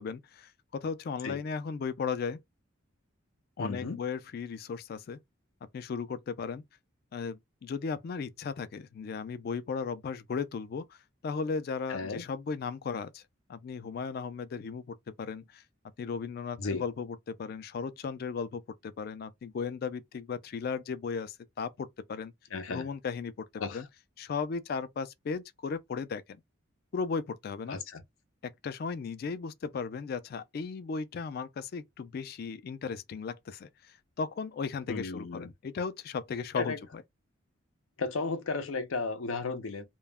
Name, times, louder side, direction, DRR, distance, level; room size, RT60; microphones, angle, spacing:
voice 1, 0.0-2.4 3.6-5.2 5.7-6.6 7.1-11.0 11.2-13.2 13.5-15.6 16.0-22.3 22.7-23.9 24.2-26.4 26.9-27.8 28.6-37.0, left 5 dB, 50° left, 0.3 m, -36 dB
voice 2, 3.6-4.0 11.9-12.2 16.6-16.8 22.5-22.9 23.6-23.8 27.7-28.0 34.9-35.5 36.6-36.8 38.0-39.8, left 4 dB, 90° left, 0.6 m, -34 dB
2.2 x 2.0 x 3.3 m
head